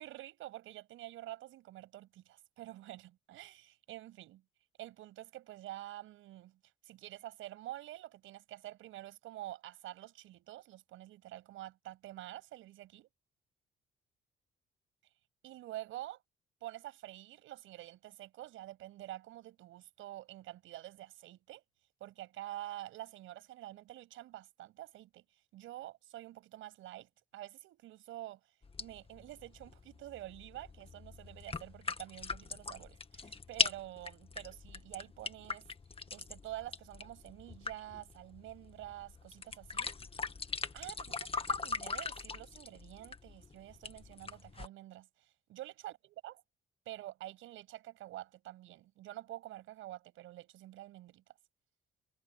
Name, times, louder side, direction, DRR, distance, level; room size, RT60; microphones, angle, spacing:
voice 1, 0.0-4.4 4.8-13.1 15.4-16.2 16.6-21.6 22.0-25.2 25.5-28.4 28.8-35.7 36.1-39.9 40.7-46.4 46.9-51.2, right 15 dB, 90° right, 7.3 m, -48 dB
sound 1, 28.6-44.7, left 4 dB, 30° left, 1.8 m, -41 dB
cardioid pair, 90°, 20 cm